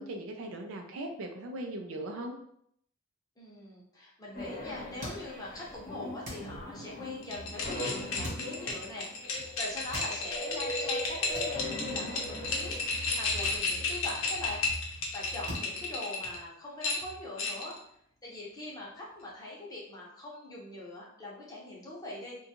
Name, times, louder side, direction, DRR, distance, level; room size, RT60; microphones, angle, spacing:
voice 1, 0.0-2.4, right 1 dB, 80° right, 3 dB, 0.4 m, -39 dB
voice 2, 3.4-14.6 14.9-17.8 18.2-22.5, left 2 dB, 20° left, -4 dB, 0.7 m, -42 dB
sound 1, 4.3-13.7, left 1 dB, 45° left, 0.9 m, -41 dB
sound 2, 5.0-5.7 6.2-7.0 8.2-8.9 9.8-10.5 11.3-12.2 12.5-12.7 13.4-14.3 14.6-15.0 15.5-16.6, equal, 35° right, 1.0 m, -45 dB
sound 3, 7.2-16.4 16.8-17.8, left 3 dB, 75° left, 0.6 m, -33 dB
2.6 x 2.2 x 2.8 m, 0.70 s
head